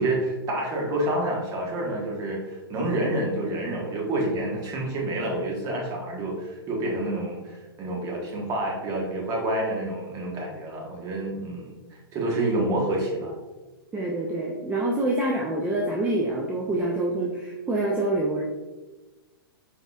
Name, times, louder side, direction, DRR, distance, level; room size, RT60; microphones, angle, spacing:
voice 1, 0.0-13.3, right 1 dB, 30° right, -1 dB, 1.3 m, -28 dB
voice 2, 13.9-18.4, right 2 dB, 10° right, -3 dB, 0.5 m, -26 dB
4.8 x 3.9 x 2.3 m, 1.2 s
hypercardioid pair, 120°, 13 cm